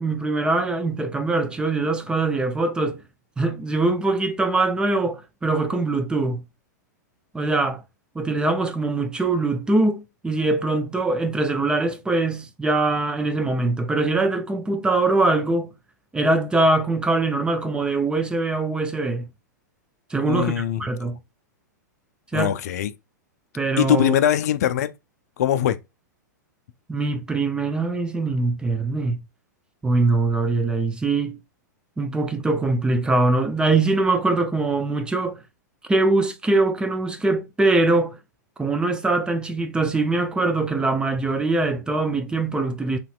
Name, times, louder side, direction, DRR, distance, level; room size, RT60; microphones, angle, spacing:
voice 1, 0.0-3.0 3.4-6.4 7.3-7.8 8.2-15.7 16.1-19.3 20.1-21.2 22.3-22.6 23.5-24.1 26.9-29.2 29.8-31.4 32.0-35.4 35.9-38.2 38.6-43.0, right 2 dB, 10° right, 0.4 m, -22 dB
voice 2, 20.2-21.1 22.3-22.9 23.8-24.9 25.4-25.8, left 11 dB, 60° left, 0.4 m, -22 dB
4.0 x 2.9 x 2.3 m
figure-of-eight pair, 105°, 10 cm